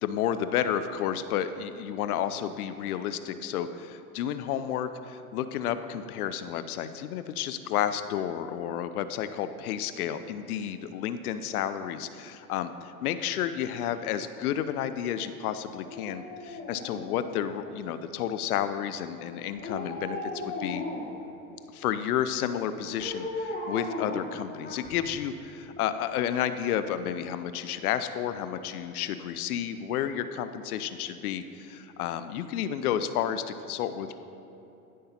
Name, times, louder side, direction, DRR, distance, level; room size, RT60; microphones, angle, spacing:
voice 1, 0.0-20.9 21.7-34.2, left 9 dB, 75° left, 11 dB, 0.6 m, -31 dB
Dog, 15.8-17.9 19.6-21.3 23.0-25.1 25.5-25.6, left 2 dB, 20° left, 1.4 m, -37 dB
13.0 x 5.5 x 2.9 m, 2.9 s
hypercardioid pair, 95°, 45 cm